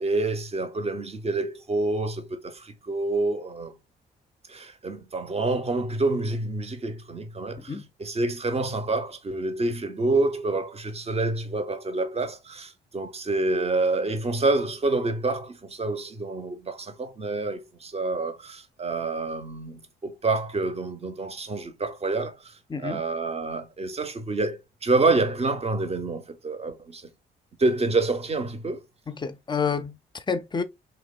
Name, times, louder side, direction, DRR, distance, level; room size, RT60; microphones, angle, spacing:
voice 1, 0.0-3.7 4.5-27.1 27.6-28.8, right 2 dB, 30° right, 0.6 m, -27 dB
voice 2, 7.6-7.9 22.7-23.0 29.1-30.6, left 5 dB, 20° left, 0.4 m, -29 dB
2.7 x 2.0 x 2.2 m
hypercardioid pair, 50°, 21 cm